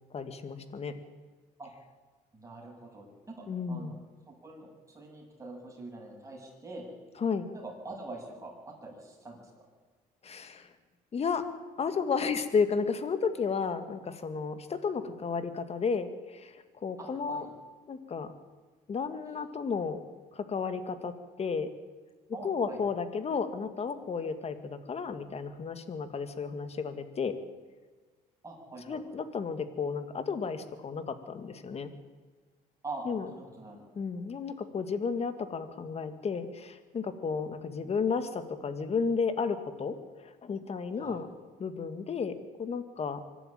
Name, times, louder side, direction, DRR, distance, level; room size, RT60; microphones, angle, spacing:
voice 1, 0.1-0.9 3.5-4.0 7.2-7.5 10.2-10.7 11.1-11.4 11.8-17.5 17.9-18.3 18.9-20.0 20.3-21.7 22.4-27.4 28.9-31.9 33.0-33.3 34.0-41.3 41.6-43.2, left 5 dB, 40° left, 10 dB, 2.0 m, -33 dB
voice 2, 2.3-4.0 4.3-4.7 4.9-6.9 7.5-9.4 17.0-17.5 22.3-22.8 28.4-29.0 32.8-33.9 40.9-41.2, right 2 dB, 20° right, -2 dB, 7.5 m, -44 dB
24.0 x 12.0 x 9.0 m, 1.4 s
cardioid pair, 110°, 17 cm